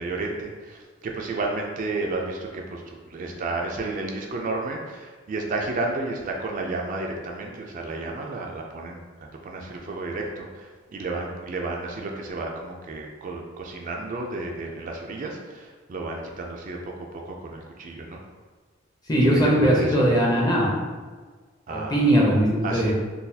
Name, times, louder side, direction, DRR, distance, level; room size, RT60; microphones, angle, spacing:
voice 1, 0.0-18.2 19.2-20.1 21.7-22.0 22.6-22.9, right 2 dB, 45° right, 1 dB, 0.3 m, -32 dB
voice 2, 19.1-20.7 21.7-22.9, right 1 dB, 20° left, -3 dB, 0.6 m, -20 dB
3.9 x 2.3 x 2.7 m, 1.4 s
head